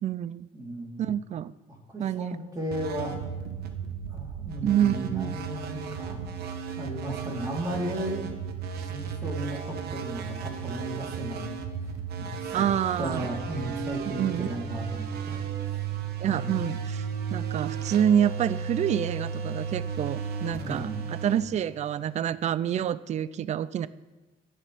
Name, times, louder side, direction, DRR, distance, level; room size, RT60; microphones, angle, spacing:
voice 1, 0.0-0.5 1.0-1.5 2.0-2.4 4.6-5.4 12.5-13.3 14.1-14.5 16.2-17.0 17.3-23.9, right 9 dB, 40° right, 17 dB, 0.4 m, -27 dB
voice 2, 0.5-1.1 1.9-3.2 4.1-8.3 8.9-11.5 12.2-12.7 13.0-15.8 20.6-21.1, right 1 dB, 20° right, -3 dB, 4.0 m, -35 dB
sound 1, 2.7-22.3, right 6 dB, 70° right, 1.2 m, -35 dB
22.5 x 8.5 x 3.6 m, 1.2 s
cardioid pair, 110°, 17 cm